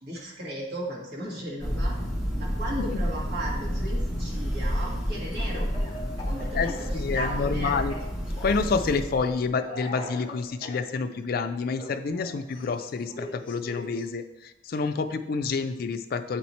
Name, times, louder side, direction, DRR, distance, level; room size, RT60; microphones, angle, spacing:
voice 1, 0.0-2.0 2.3-5.7 6.2-7.9, right 1 dB, 60° right, -3 dB, 1.5 m, -36 dB
Thunder, 1.6-9.5, equal, ahead, 1.1 m, -30 dB
Speech / Cough, 5.3-7.6 7.9-8.7 9.6-10.8 11.8-14.1, left 1 dB, 25° left, 0.8 m, -41 dB
voice 2, 6.5-7.9 8.4-14.2 14.7-16.4, left 4 dB, 50° left, 9 dB, 0.4 m, -28 dB
7.7 x 3.0 x 4.1 m, 0.95 s
head